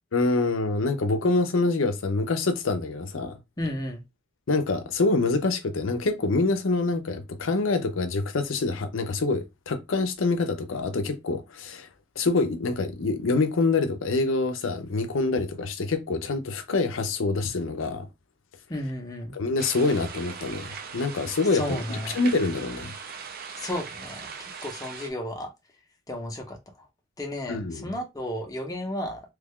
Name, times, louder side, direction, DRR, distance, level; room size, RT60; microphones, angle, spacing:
voice 1, 0.1-3.4 4.5-11.9 12.2-18.1 19.3-22.9 27.5-27.9, left 3 dB, 90° left, 0.6 m, -26 dB
voice 2, 3.6-4.0 18.7-19.3 21.5-22.2 23.6-25.5 26.1-26.6 27.2-29.2, left 1 dB, 20° left, 0.8 m, -33 dB
sound 1, 19.6-25.1, right 6 dB, 50° right, 0.5 m, -40 dB
3.2 x 2.4 x 3.6 m
head